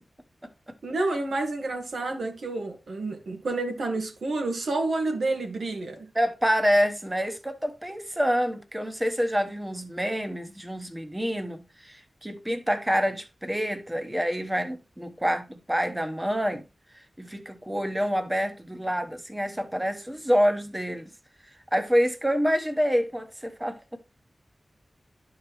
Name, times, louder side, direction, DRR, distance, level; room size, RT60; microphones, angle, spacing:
voice 1, 0.8-6.1, right 2 dB, 90° right, 1.7 m, -29 dB
voice 2, 6.1-16.6 17.2-21.1 21.7-23.8, equal, 10° right, 0.9 m, -27 dB
11.5 x 4.7 x 3.0 m
wide cardioid pair, 110°, 0 cm